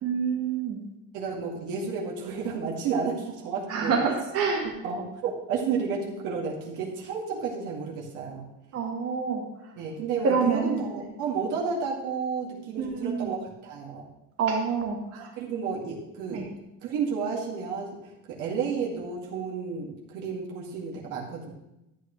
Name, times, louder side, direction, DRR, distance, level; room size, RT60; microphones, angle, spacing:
voice 1, 0.0-0.8 3.7-4.7 8.7-9.4 10.2-10.8 12.8-13.3 14.4-15.3 16.3-16.4, right 5 dB, 50° right, 1 dB, 1.5 m, -27 dB
voice 2, 1.1-4.0 4.6-8.5 9.8-14.0 15.1-16.4 16.8-18.0 18.3-21.5, right 5 dB, 75° right, -3 dB, 2.2 m, -32 dB
12.5 x 8.7 x 3.2 m, 0.91 s
cardioid pair, 175°, 31 cm